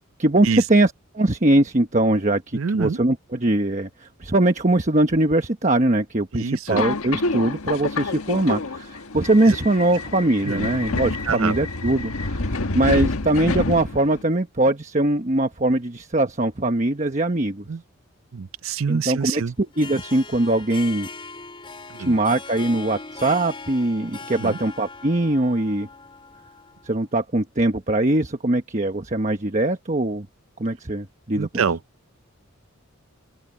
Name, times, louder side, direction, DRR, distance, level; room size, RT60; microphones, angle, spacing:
voice 1, 0.2-17.6 18.9-21.1 22.0-25.9 26.8-30.3 30.6-31.6, right 1 dB, 35° right, 1.2 m, -21 dB
voice 2, 2.5-3.0 6.3-6.8 9.5-9.6 10.4-10.6 11.2-11.6 17.7-17.8 18.3-19.5 22.0-22.1 24.4-24.6 31.4-31.8, right 5 dB, 70° right, 0.6 m, -26 dB
Subway metro underground, 6.7-14.2, left 3 dB, 90° left, 1.5 m, -28 dB
Harp, 19.6-26.9, left 4 dB, 25° left, 3.8 m, -39 dB
open air
head